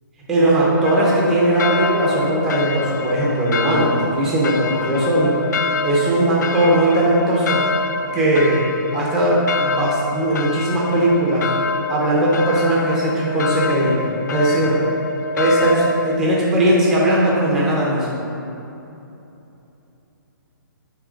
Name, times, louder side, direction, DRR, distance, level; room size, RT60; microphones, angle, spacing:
voice 1, 0.3-5.3 5.8-7.6 8.1-8.6 8.9-11.5 11.9-13.9 14.3-14.8 15.3-18.2, right 1 dB, 5° right, -6 dB, 0.5 m, -18 dB
sound 1, 0.8-16.2, left 4 dB, 55° left, 0.4 m, -26 dB
8.5 x 3.1 x 5.0 m, 2.8 s
hypercardioid pair, 180°, 11 cm